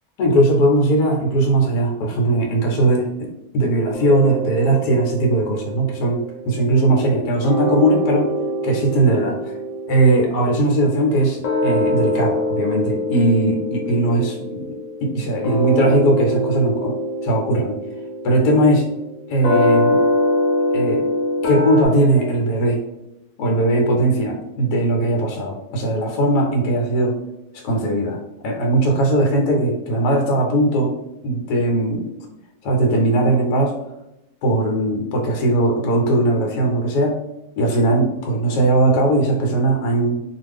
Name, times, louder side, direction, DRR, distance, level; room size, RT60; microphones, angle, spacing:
voice 1, 0.2-3.3 3.5-8.3 8.6-9.5 9.9-17.0 17.2-17.8 18.2-18.9 19.3-20.0 20.7-21.1 21.4-22.8 23.4-27.1 27.6-28.2 28.4-30.9 31.2-32.0 32.6-33.7 34.4-37.2 37.6-40.2, right 1 dB, 80° left, 1 dB, 1.2 m, -19 dB
sound 1, 3.9-7.2 7.4-21.9, left 1 dB, 60° left, 1.0 m, -24 dB
2.4 x 2.4 x 3.3 m, 0.88 s
omnidirectional pair, 1.7 m